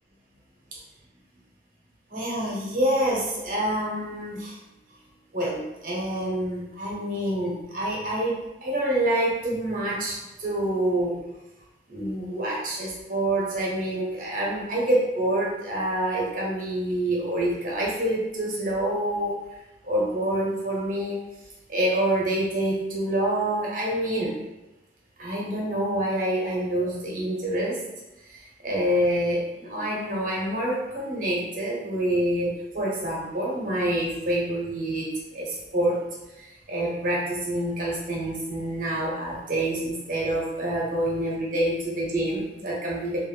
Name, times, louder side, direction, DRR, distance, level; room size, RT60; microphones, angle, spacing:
voice 1, 2.1-4.6 5.3-11.2 11.9-19.4 19.8-21.2 21.7-24.4 25.2-27.8 28.2-36.0 36.3-43.3, right 1 dB, 45° right, -3 dB, 0.7 m, -27 dB
2.5 x 2.2 x 3.0 m, 0.97 s
head